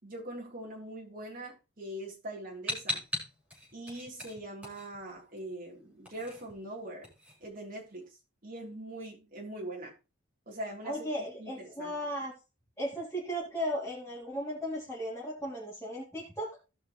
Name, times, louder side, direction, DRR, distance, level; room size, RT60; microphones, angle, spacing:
voice 1, 0.0-3.0 3.7-7.1 7.4-8.0 8.4-9.9 10.5-11.9, right 1 dB, 40° right, -2 dB, 3.4 m, -42 dB
sound 1, 2.7-5.4 5.7-8.1, left 1 dB, 5° right, 4.4 m, -39 dB
voice 2, 10.8-12.3 12.8-16.5, equal, 10° left, -8 dB, 3.4 m, -36 dB
17.0 x 5.7 x 3.1 m, 0.30 s
head